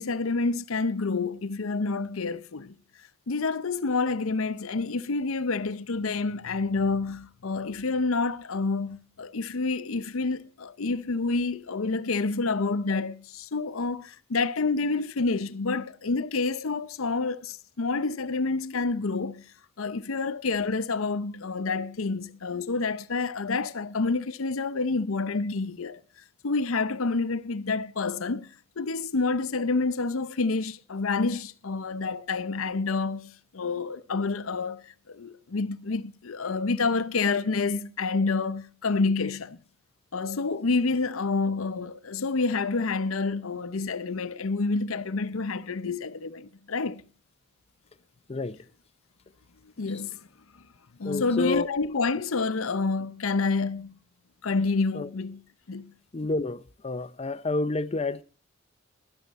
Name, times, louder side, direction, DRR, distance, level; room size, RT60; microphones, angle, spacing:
voice 1, 0.0-2.8 3.3-19.4 19.8-26.0 26.4-39.6 40.1-47.0 49.8-50.2 51.0-53.9 54.4-55.4 55.7-55.9, left 3 dB, 85° left, 0.7 m, -28 dB
voice 2, 48.3-48.7 51.0-51.7 54.9-55.1 56.1-58.2, left 2 dB, 30° left, 0.5 m, -29 dB
12.5 x 11.5 x 4.1 m
head